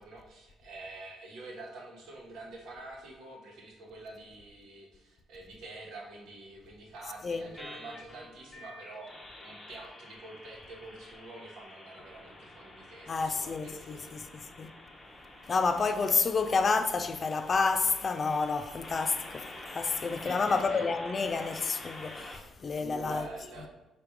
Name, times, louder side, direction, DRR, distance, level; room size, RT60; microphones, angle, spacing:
voice 1, 0.0-14.2 20.2-20.9 22.8-23.7, right 2 dB, 75° right, 1.1 m, -47 dB
sound 1, 7.5-22.4, left 1 dB, 20° left, 0.7 m, -48 dB
voice 2, 13.1-14.3 14.6-14.7 15.5-23.3, left 4 dB, 40° left, 0.4 m, -29 dB
3.4 x 2.5 x 4.5 m
cardioid pair, 80°, 0 cm